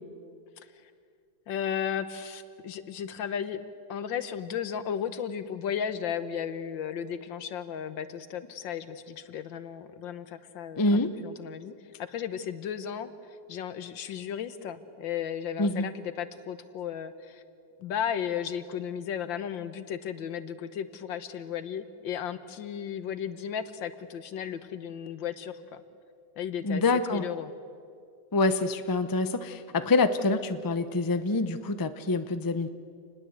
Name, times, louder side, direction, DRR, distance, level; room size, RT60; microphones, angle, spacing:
voice 1, 1.5-11.7 12.1-13.1 13.5-17.4 17.8-25.8 26.4-26.8 27.1-27.5, left 8 dB, 90° left, 12 dB, 1.8 m, -35 dB
voice 2, 10.8-11.1 15.6-15.9 26.6-27.2 28.3-32.7, left 3 dB, 25° left, 10 dB, 0.4 m, -26 dB
28.5 x 20.0 x 8.1 m, 2.4 s
omnidirectional pair, 2.0 m